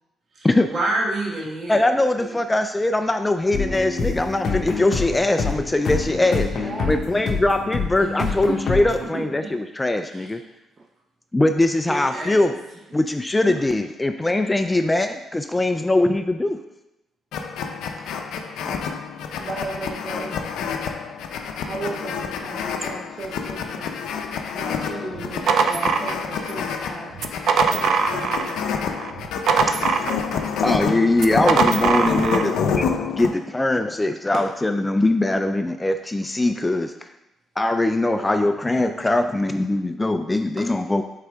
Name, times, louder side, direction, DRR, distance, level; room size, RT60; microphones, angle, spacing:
voice 1, 0.3-2.4 8.2-8.6 9.1-9.5 10.1-10.3 11.9-12.6 13.5-13.6, right 2 dB, 50° right, -3 dB, 1.9 m, -29 dB
voice 2, 1.7-6.5 6.9-10.4 11.3-12.5 12.9-16.6 18.6-18.7 29.7-29.8 30.6-37.1 37.6-41.0, left 2 dB, 15° left, 7 dB, 0.3 m, -21 dB
sound 1, 3.5-9.1, left 4 dB, 60° left, 1.0 m, -27 dB
voice 3, 6.3-7.1 7.4-7.5 19.4-20.4 21.6-23.9 24.5-27.2 27.6-28.6, right 3 dB, 35° right, -1 dB, 0.8 m, -35 dB
sound 2, 17.3-33.3, left 6 dB, 85° left, 0.5 m, -28 dB
sound 3, 25.1-26.6 27.1-28.6 28.9-30.5 31.1-32.5, right 5 dB, 70° right, 0.4 m, -22 dB
8.1 x 3.8 x 3.5 m, 0.95 s
cardioid pair, 90°, 0 cm